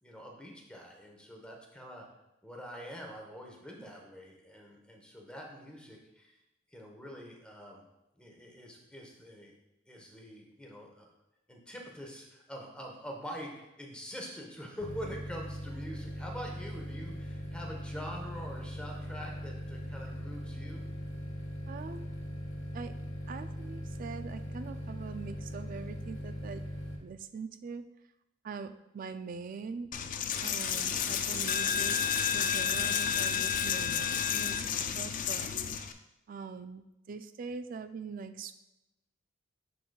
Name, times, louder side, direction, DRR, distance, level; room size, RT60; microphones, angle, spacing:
voice 1, 0.0-2.1 2.4-6.4 6.7-7.8 8.1-9.5 9.9-11.1 11.5-20.9, equal, 5° left, -1 dB, 1.0 m, -45 dB
sound 1, 14.8-27.0, equal, 75° left, 0.9 m, -40 dB
voice 2, 21.7-22.1 22.7-22.9 23.3-26.6 27.0-27.8 28.4-29.9 30.4-32.0 32.3-35.5 36.3-38.5, right 5 dB, 45° right, 11 dB, 0.3 m, -43 dB
Coin (dropping), 29.9-35.9, left 8 dB, 40° left, 0.3 m, -31 dB
11.0 x 3.9 x 2.3 m, 0.95 s
head